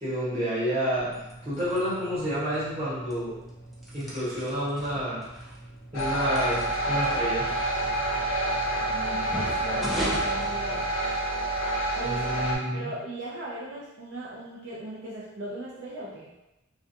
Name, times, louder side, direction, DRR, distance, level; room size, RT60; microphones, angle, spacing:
voice 1, 0.0-3.3 3.9-5.2 5.9-6.6 6.9-7.5 12.0-12.9, equal, 30° right, -10 dB, 1.1 m, -29 dB
sound 1, 0.9-11.4, right 1 dB, ahead, 0.3 m, -40 dB
sound 2, 5.9-12.6, right 1 dB, 85° left, 0.6 m, -28 dB
voice 2, 8.7-10.9 11.9-16.3, right 1 dB, 65° right, -7 dB, 0.4 m, -38 dB
2.3 x 2.3 x 2.7 m, 0.96 s
head